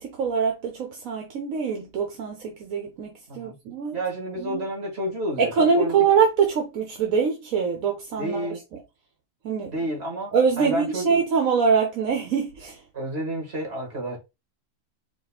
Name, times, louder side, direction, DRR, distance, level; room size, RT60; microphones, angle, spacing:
voice 1, 0.0-4.0 4.4-4.6 5.4-8.6 9.4-9.7 10.3-12.8, right 6 dB, 75° right, 1.3 m, -24 dB
voice 2, 3.9-5.9 8.2-8.6 9.7-10.3 10.6-11.1 12.9-14.2, right 1 dB, 50° right, 2.3 m, -30 dB
4.9 x 2.4 x 4.2 m
omnidirectional pair, 1.4 m